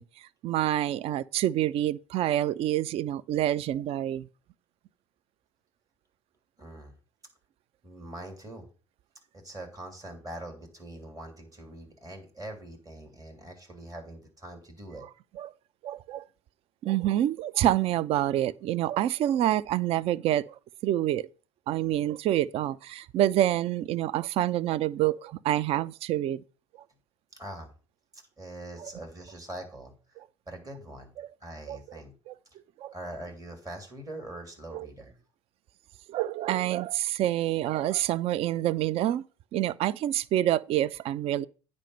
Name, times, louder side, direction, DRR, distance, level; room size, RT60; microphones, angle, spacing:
voice 1, 0.0-4.3 15.4-15.5 15.8-16.2 16.8-21.3 21.7-26.4 28.8-28.9 31.2-31.3 31.7-31.8 32.3-32.4 32.8-32.9 34.7-34.9 36.1-39.2 39.5-41.5, right 13 dB, 40° right, 0.4 m, -27 dB
voice 2, 6.6-6.9 7.8-8.7 9.3-15.0 27.4-27.7 28.1-30.2 30.5-31.1 31.4-32.1 32.9-35.1, right 1 dB, 25° right, 2.9 m, -43 dB
9.0 x 5.3 x 5.4 m
figure-of-eight pair, 65°, 16 cm